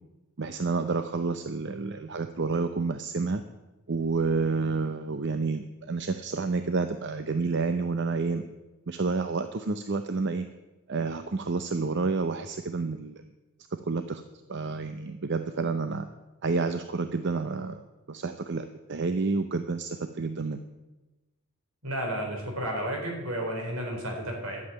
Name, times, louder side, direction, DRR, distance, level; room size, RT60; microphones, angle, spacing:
voice 1, 0.4-3.4 3.9-8.5 8.9-10.5 10.9-13.2 13.9-14.2 14.5-16.1 16.4-20.6, right 4 dB, 55° right, 9 dB, 0.7 m, -29 dB
voice 2, 21.8-24.6, right 1 dB, 80° right, 1 dB, 4.4 m, -32 dB
12.0 x 7.7 x 9.6 m, 1.1 s
head